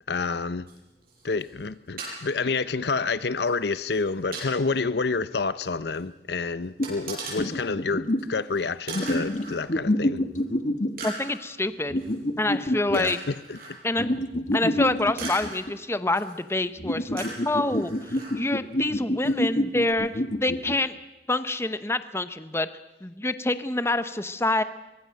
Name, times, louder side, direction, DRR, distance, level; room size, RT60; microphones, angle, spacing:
voice 1, 0.1-0.7 1.2-10.2 12.9-13.6, left 4 dB, 65° left, 0.7 m, -28 dB
sound 1, 0.7-0.8 1.0-1.7 2.0-2.2 3.5-3.6 3.9-4.5 5.6-5.7 5.9-6.0 6.8-7.4 8.2-8.3 8.5-8.6 8.9-9.6 10.4-10.5 11.0-11.4 12.0-12.1 12.9-13.7 14.5-14.6 15.2-15.6 16.1-16.5 17.2-18.3 19.3-19.4 19.9-20.0, right 3 dB, 55° right, 8.0 m, -38 dB
sound 2, 6.8-6.9 7.4-8.3 8.9-11.1 11.9-13.0 14.0-15.7 16.8-20.8, left 1 dB, 45° left, 1.4 m, -27 dB
voice 2, 11.0-11.9 12.4-13.2 13.8-14.1 14.5-21.0 21.3-22.7 23.0-24.6, left 2 dB, 15° left, 0.9 m, -27 dB
23.5 x 23.5 x 6.5 m
head